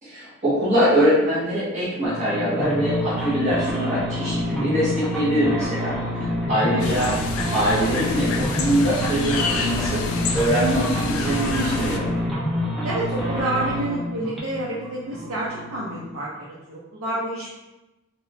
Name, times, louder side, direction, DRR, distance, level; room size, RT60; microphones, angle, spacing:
voice 1, 0.0-5.9 6.2-7.1 7.5-10.0 10.3-12.1, equal, 35° right, -10 dB, 0.7 m, -23 dB
sound 1, 2.0-16.2, equal, ahead, 0.4 m, -28 dB
voice 2, 6.5-7.2 12.8-17.5, right 1 dB, 85° right, -5 dB, 0.5 m, -29 dB
sound 2, 6.8-12.0, left 4 dB, 85° left, 0.3 m, -28 dB
2.9 x 2.0 x 2.5 m, 1.0 s
head